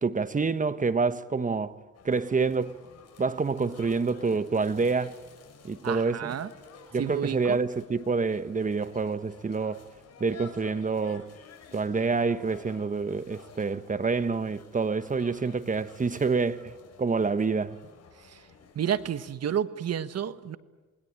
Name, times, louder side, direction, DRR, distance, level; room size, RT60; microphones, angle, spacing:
voice 1, 0.0-2.9 3.2-5.2 5.6-6.4 6.9-9.8 10.2-11.3 11.7-16.7 17.0-17.8, right 4 dB, 25° right, 1.2 m, -27 dB
sound 1, 1.9-19.4, left 5 dB, 55° left, 6.4 m, -52 dB
voice 2, 5.8-6.5 7.0-7.6 18.2-18.4 18.7-20.6, right 9 dB, 55° right, 1.5 m, -30 dB
27.5 x 21.0 x 9.0 m
cardioid pair, 90°, 30 cm